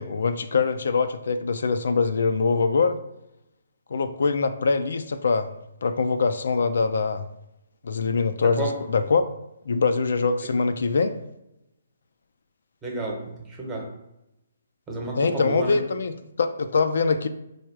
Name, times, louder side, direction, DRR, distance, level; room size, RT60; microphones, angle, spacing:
voice 1, 0.0-3.0 3.9-5.5 5.8-7.2 7.8-9.2 9.7-11.1 15.1-17.3, left 4 dB, 70° left, 10 dB, 0.3 m, -23 dB
voice 2, 8.4-8.7 10.4-10.7 12.8-13.9 14.9-15.8, right 3 dB, 15° right, -1 dB, 1.0 m, -31 dB
4.7 x 2.3 x 4.5 m, 0.88 s
hypercardioid pair, 150°, 0 cm